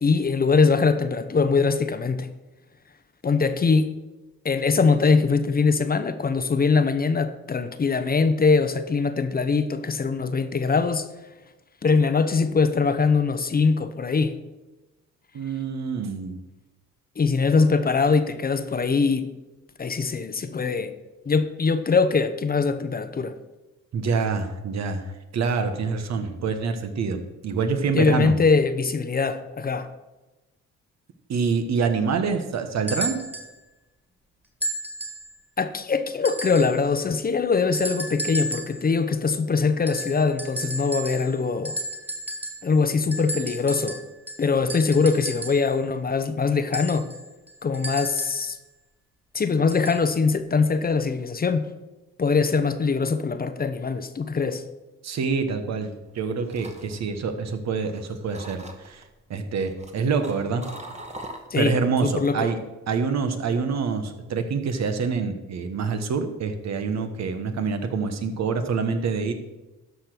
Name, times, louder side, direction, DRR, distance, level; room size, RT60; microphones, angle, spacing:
voice 1, 0.0-2.3 3.2-4.0 4.4-11.1 11.8-14.4 17.2-19.3 19.8-20.9 21.3-23.3 27.9-29.9 35.6-41.8 42.6-44.0 44.4-47.1 47.6-48.6 49.3-51.7 52.2-54.6 61.5-62.5, left 4 dB, 30° left, 0.8 m, -22 dB
voice 2, 15.3-16.4 23.9-28.3 31.3-33.2 55.0-59.0 59.3-60.6 61.6-62.6 62.9-69.3, right 5 dB, 60° right, 1.3 m, -26 dB
sound 1, 32.9-33.5 34.6-35.3 36.2-36.8 37.7-38.8 39.9-41.4 41.6-42.7 43.1-45.7 46.7-48.5 49.7-50.0 51.0-51.1, right 1 dB, 5° right, 2.0 m, -33 dB
sound 2, 56.1-57.9 58.3-59.0 59.6-61.8 62.2-62.5, right 1 dB, 20° right, 1.4 m, -41 dB
12.5 x 5.1 x 6.0 m
cardioid pair, 90°, 30 cm